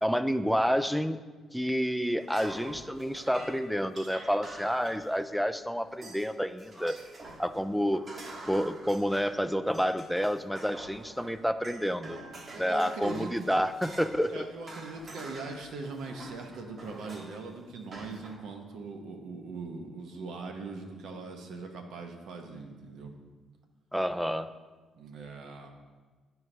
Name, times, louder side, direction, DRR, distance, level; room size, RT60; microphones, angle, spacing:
voice 1, 0.0-1.2 1.5-7.0 7.4-8.0 8.5-12.2 12.6-14.5 23.9-24.5, equal, ahead, 11 dB, 0.3 m, -29 dB
sound 1, 2.2-5.5 6.0-6.3 6.6-14.4 14.7-17.5 17.9-18.4, right 2 dB, 40° right, 1.1 m, -47 dB
voice 2, 12.5-13.5 14.3-23.1 24.9-25.7, right 3 dB, 80° right, 3 dB, 0.9 m, -41 dB
9.5 x 4.5 x 3.3 m, 1.4 s
cardioid pair, 90°, 0 cm